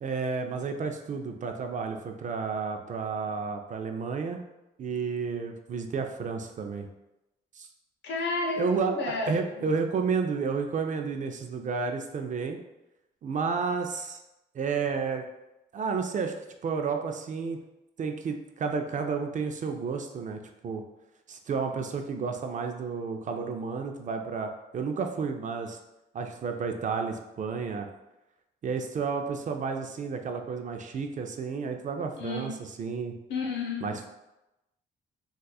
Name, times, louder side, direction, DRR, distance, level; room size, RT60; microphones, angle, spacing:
voice 1, 0.0-4.4 4.8-6.9 7.5-7.7 8.6-8.9 9.3-12.6 13.2-14.2 14.5-15.2 15.7-16.3 16.6-17.6 18.0-20.8 21.3-25.8 26.1-27.9 28.6-33.1 33.8-34.1, right 5 dB, 40° right, 5 dB, 0.4 m, -31 dB
voice 2, 8.0-9.4 32.2-32.5 33.3-33.9, left 3 dB, 65° left, 1 dB, 0.7 m, -31 dB
4.0 x 2.4 x 2.3 m, 0.94 s
cardioid pair, 90°, 20 cm